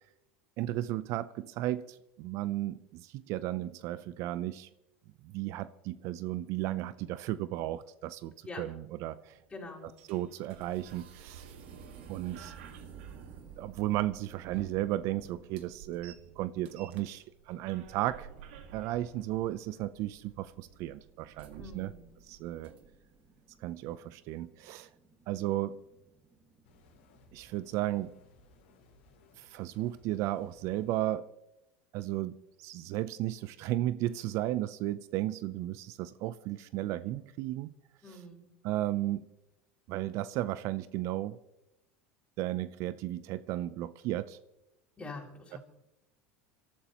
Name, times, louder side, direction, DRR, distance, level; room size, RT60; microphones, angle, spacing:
voice 1, 0.6-4.7 5.2-9.4 10.1-11.5 12.1-12.5 13.6-18.3 18.7-21.9 22.3-22.7 23.6-24.9 25.3-25.8 27.3-28.1 29.4-31.3 31.9-37.7 38.6-39.2 39.9-41.4 42.4-44.4 45.5-45.6, right 14 dB, 55° right, 16 dB, 0.6 m, -34 dB
sound 1, 9.2-23.2, right 7 dB, 75° right, 1.8 m, -51 dB
voice 2, 9.5-9.9 21.6-22.0 38.0-38.5 45.0-45.6, left 3 dB, 20° left, -1 dB, 5.6 m, -44 dB
sound 2, 11.6-30.5, right 3 dB, 20° right, 5.2 m, -63 dB
sound 3, 26.7-31.0, left 3 dB, 80° left, 2.8 m, -62 dB
26.0 x 13.0 x 3.0 m, 0.92 s
hypercardioid pair, 95°, 6 cm